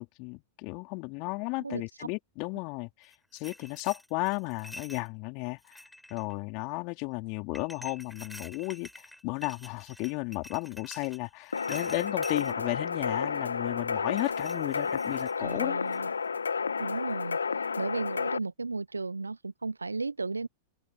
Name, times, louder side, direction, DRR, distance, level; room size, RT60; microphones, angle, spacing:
voice 1, 0.0-5.8 6.1-15.8, left 30 dB, 45° left, 4.3 m, -34 dB
voice 2, 1.6-2.1 15.4-16.1 16.8-20.5, right 3 dB, 85° right, 1.0 m, -35 dB
sound 1, 3.0-5.1 5.6-6.3 7.5-12.5 14.1-15.6 15.9-16.2, left 1 dB, 5° left, 6.6 m, -48 dB
sound 2, 11.5-18.4, left 5 dB, 80° left, 1.4 m, -31 dB
open air
figure-of-eight pair, 95°, 0 cm